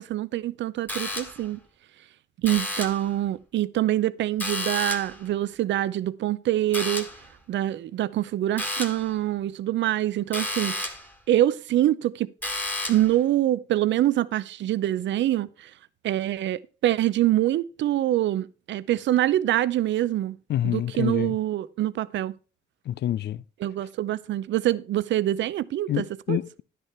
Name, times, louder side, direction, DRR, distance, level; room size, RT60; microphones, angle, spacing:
voice 1, 0.0-1.6 2.4-7.1 7.5-10.9 11.3-12.3 12.9-15.7 16.0-20.4 20.6-22.4 23.6-26.4, right 13 dB, 65° right, 0.5 m, -25 dB
sound 1, 0.9-1.6 2.4-3.1 4.4-5.2 6.7-7.3 8.6-9.1 10.3-11.1 12.4-13.2, left 1 dB, 10° left, 1.6 m, -31 dB
voice 2, 20.5-21.4 22.9-23.4 25.9-26.6, left 12 dB, 60° left, 0.5 m, -27 dB
10.0 x 6.8 x 4.4 m
cardioid pair, 90°, 20 cm